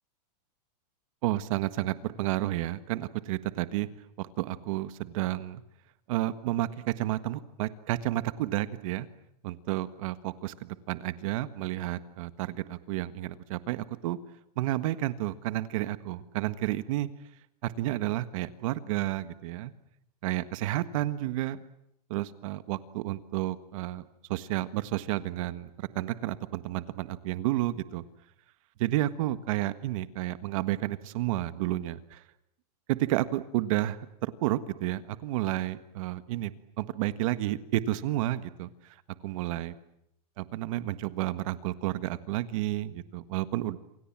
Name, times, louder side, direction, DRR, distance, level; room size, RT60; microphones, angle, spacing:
voice 1, 1.2-3.9 4.2-5.6 6.1-9.1 9.4-14.2 14.6-17.1 17.6-19.7 20.2-21.6 22.1-25.7 25.9-28.0 28.8-32.2 32.9-36.5 36.8-38.7 39.2-39.7 40.4-43.8, right 15 dB, 55° right, 12 dB, 1.6 m, -31 dB
28.0 x 27.5 x 7.5 m, 0.78 s
supercardioid pair, 155°, 21 cm